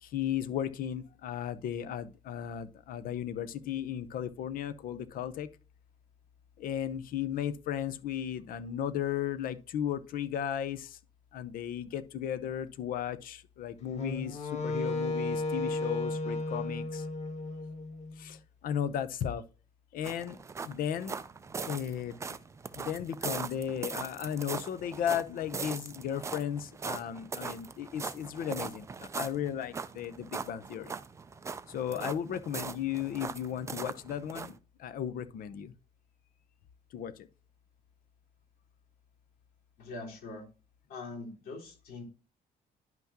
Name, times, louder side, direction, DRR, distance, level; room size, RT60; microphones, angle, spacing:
voice 1, 0.0-5.5 6.6-11.0 11.3-17.1 18.2-19.4 19.9-20.4 20.6-21.2 21.6-22.2 22.7-30.9 31.7-35.7 36.9-37.3, left 9 dB, 65° left, 0.7 m, -35 dB
Wind instrument woodwind instrument, 13.9-18.2, left 2 dB, 45° left, 1.3 m, -34 dB
sound 1, 20.0-34.6, right 5 dB, 20° right, 0.4 m, -40 dB
voice 2, 39.8-40.5 40.9-42.0, left 3 dB, 90° left, 3.6 m, -42 dB
10.5 x 5.8 x 2.8 m
cardioid pair, 175°, 15 cm